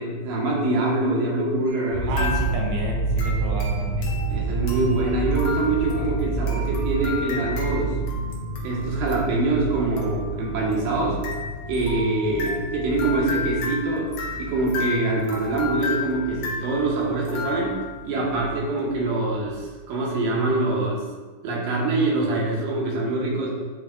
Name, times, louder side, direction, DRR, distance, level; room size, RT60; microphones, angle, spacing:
voice 1, 0.0-2.3 4.3-8.0 8.6-11.2 11.7-17.8 18.0-21.0 21.4-23.6, right 2 dB, 70° right, -3 dB, 2.8 m, -24 dB
sound 1, 1.7-1.9 2.2-2.8 3.2-18.1, left 4 dB, 75° left, 1.4 m, -34 dB
sound 2, 1.9-19.0 19.3-19.6, right 3 dB, 30° left, 2.1 m, -30 dB
voice 2, 2.1-4.1, right 3 dB, 85° right, -1 dB, 3.0 m, -32 dB
10.5 x 5.3 x 2.3 m, 1.4 s
omnidirectional pair, 4.3 m